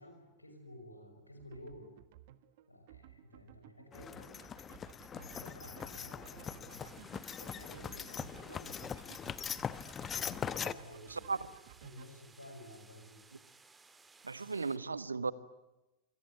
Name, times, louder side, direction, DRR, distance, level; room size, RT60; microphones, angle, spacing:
voice 1, 0.0-1.9 2.7-4.5 5.1-7.0 7.4-9.4 10.2-11.5 11.8-13.2, left 1 dB, 85° left, 5 dB, 6.2 m, -53 dB
sound 1, 1.4-12.1, right 13 dB, 50° right, 1.4 m, -57 dB
sound 2, 3.9-10.7, left 7 dB, 25° left, 0.9 m, -41 dB
sound 3, 6.7-14.8, right 4 dB, 10° right, 1.8 m, -61 dB
voice 2, 14.2-15.3, right 4 dB, 75° right, 17 dB, 1.1 m, -36 dB
27.5 x 23.0 x 9.4 m, 1.0 s
figure-of-eight pair, 90°, 0 cm